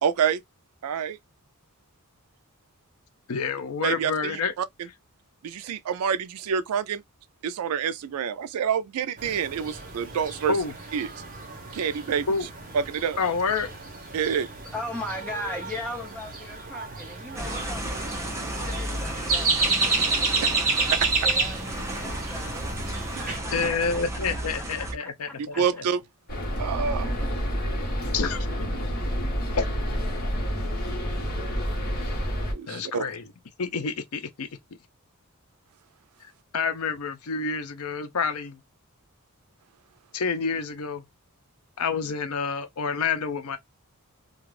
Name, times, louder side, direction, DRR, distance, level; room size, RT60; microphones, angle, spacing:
voice 1, 0.0-0.4 0.8-1.2 3.8-4.3 5.4-7.0 7.4-10.5 10.9-11.1 11.7-12.3 12.9-13.2 14.1-14.5 25.6-26.0 26.6-27.1 32.5-33.0, right 7 dB, 80° right, 0.4 m, -27 dB
voice 2, 3.3-4.5 10.5-10.7 12.3-12.5 13.2-13.7 23.5-25.8 28.1-28.7 30.2-30.3 32.7-33.3 33.6-34.5 36.2-38.6 40.1-41.0 41.8-43.6, left 5 dB, 75° left, 0.6 m, -28 dB
sound 1, 9.2-23.4, right 3 dB, 40° right, 0.9 m, -30 dB
voice 3, 14.7-22.7 23.1-24.0 24.6-25.6, left 1 dB, 5° left, 1.1 m, -39 dB
sound 2, 17.4-24.9, right 1 dB, 15° right, 0.7 m, -33 dB
sound 3, 26.3-32.5, equal, 45° left, 1.1 m, -28 dB
2.4 x 2.2 x 3.1 m
head